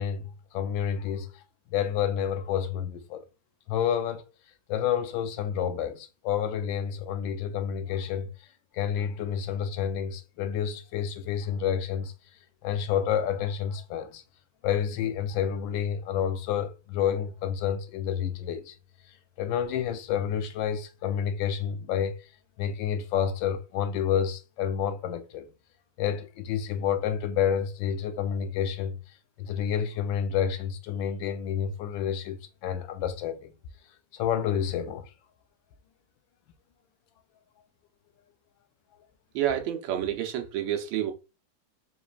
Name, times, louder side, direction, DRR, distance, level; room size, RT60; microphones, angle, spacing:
voice 1, 0.0-1.4 1.7-3.2 3.7-4.3 4.7-8.3 8.7-12.1 12.6-14.2 14.6-18.8 19.4-22.3 22.6-25.5 26.0-29.0 29.4-33.5 34.1-35.1, left 8 dB, 85° left, 1.3 m, -29 dB
voice 2, 39.3-41.1, right 10 dB, 80° right, 1.4 m, -29 dB
4.1 x 3.1 x 2.3 m
omnidirectional pair, 2.0 m